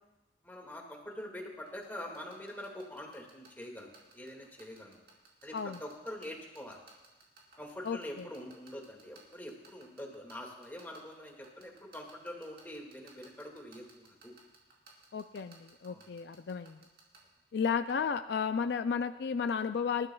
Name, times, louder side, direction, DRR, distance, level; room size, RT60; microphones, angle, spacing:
voice 1, 0.4-5.0 5.4-6.8 7.6-14.3 15.9-16.1, left 1 dB, 10° left, 0 dB, 1.9 m, -45 dB
sound 1, 1.7-17.2, right 4 dB, 55° right, 3.9 m, -57 dB
voice 2, 7.8-8.3 15.1-16.8 17.5-20.1, left 6 dB, 70° left, 10 dB, 0.4 m, -33 dB
26.0 x 13.0 x 2.3 m, 1.1 s
head